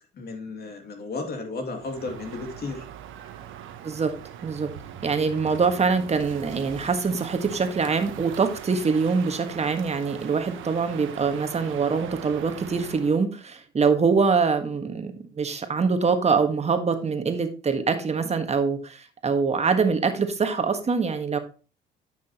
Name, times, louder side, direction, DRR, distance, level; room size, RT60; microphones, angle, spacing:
voice 1, 0.1-2.9, left 3 dB, 50° left, 4 dB, 2.6 m, -34 dB
Crow, 1.7-13.2, right 10 dB, 70° right, 1.1 m, -41 dB
voice 2, 3.8-4.1 4.4-4.7 5.0-21.4, right 5 dB, 30° right, 8 dB, 1.5 m, -24 dB
9.7 x 6.2 x 3.0 m, 0.36 s
supercardioid pair, 85°, 21 cm